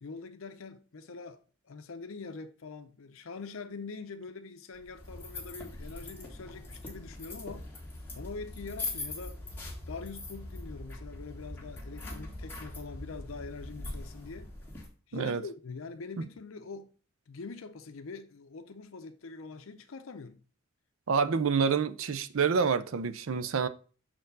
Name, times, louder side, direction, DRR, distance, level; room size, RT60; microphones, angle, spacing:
voice 1, 0.0-7.7 8.2-9.4 9.9-14.5 15.1-16.9 17.3-20.4, left 4 dB, 75° left, 0.6 m, -44 dB
sound 1, 4.8-14.9, left 2 dB, 10° left, 1.6 m, -42 dB
voice 2, 21.1-23.7, right 5 dB, 75° right, 0.5 m, -27 dB
6.2 x 4.3 x 3.8 m
head